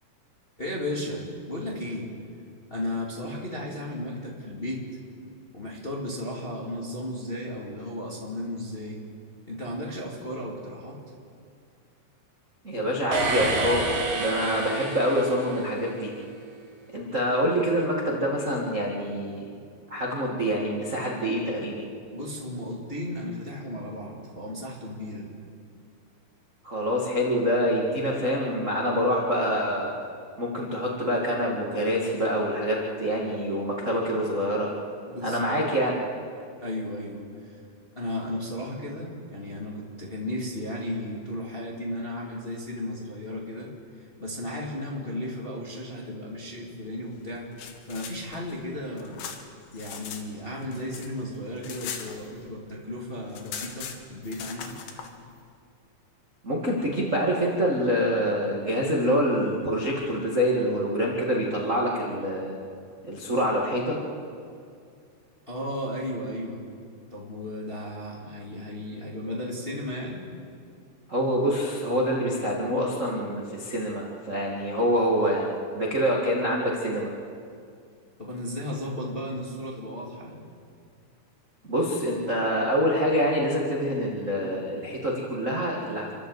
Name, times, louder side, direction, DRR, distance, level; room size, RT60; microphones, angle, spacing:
voice 1, 0.6-2.1 2.7-4.8 5.5-9.0 9.4-11.0 22.1-25.3 35.1-35.7 36.6-37.6 37.9-43.7 44.0-49.2 49.7-54.8 65.5-66.6 67.1-70.2 78.2-80.4, left 1 dB, 20° left, -2 dB, 1.8 m, -34 dB
voice 2, 12.6-16.1 16.9-19.5 19.9-21.9 26.6-29.9 30.4-34.7 35.2-36.0 56.4-62.6 63.0-64.0 71.1-77.1 81.6-86.1, equal, 30° right, -3 dB, 1.4 m, -26 dB
sound 1, 13.1-15.9, right 2 dB, 50° right, 3.5 m, -29 dB
sound 2, 47.3-50.2 50.5-52.7 53.0-53.1 53.3-55.1, left 7 dB, 80° left, 3.6 m, -40 dB
29.5 x 12.0 x 8.1 m, 2.3 s
omnidirectional pair, 4.8 m